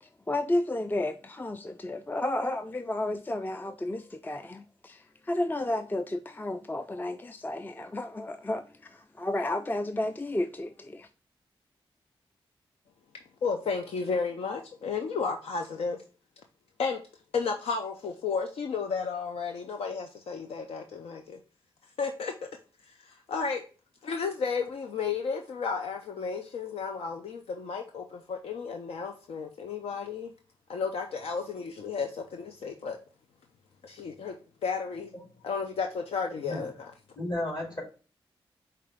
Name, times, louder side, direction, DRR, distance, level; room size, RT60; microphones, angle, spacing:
voice 1, 0.0-11.1, left 1 dB, 20° left, 0.4 m, -32 dB
voice 2, 13.4-16.0 16.8-17.0 17.3-21.4 22.0-22.3 22.9-23.6 24.0-30.3 30.7-33.0 33.8-34.4 34.6-35.1 35.4-36.9, left 5 dB, 85° left, 0.5 m, -33 dB
voice 3, 37.2-37.8, left 1 dB, 45° left, 2.4 m, -32 dB
4.8 x 3.3 x 3.4 m
cardioid pair, 45°, 10 cm